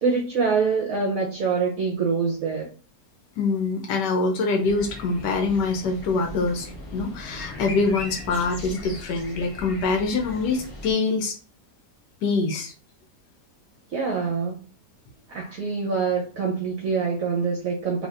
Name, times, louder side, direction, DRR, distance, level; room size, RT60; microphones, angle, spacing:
voice 1, 0.0-2.7 13.9-14.6 15.3-18.1, right 5 dB, 60° right, -1 dB, 1.0 m, -25 dB
voice 2, 3.4-11.4 12.2-12.7, left 3 dB, 85° left, 2 dB, 1.3 m, -24 dB
sound 1, 4.6-10.9, left 1 dB, 35° left, 0.5 m, -39 dB
4.1 x 3.1 x 2.5 m, 0.36 s
omnidirectional pair, 1.8 m